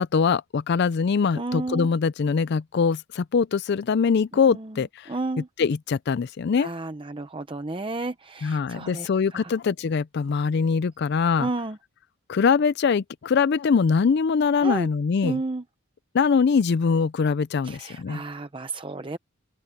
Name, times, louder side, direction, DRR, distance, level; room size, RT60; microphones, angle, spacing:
voice 1, 0.0-5.1 5.6-6.7 8.4-11.5 12.3-15.4 16.1-18.2, left 5 dB, 50° left, 0.4 m, -23 dB
voice 2, 1.3-1.9 4.5-4.8 5.1-5.5 6.6-9.5 11.4-11.8 14.6-14.9 15.2-15.6 17.6-19.2, right 2 dB, 25° right, 0.7 m, -32 dB
open air
head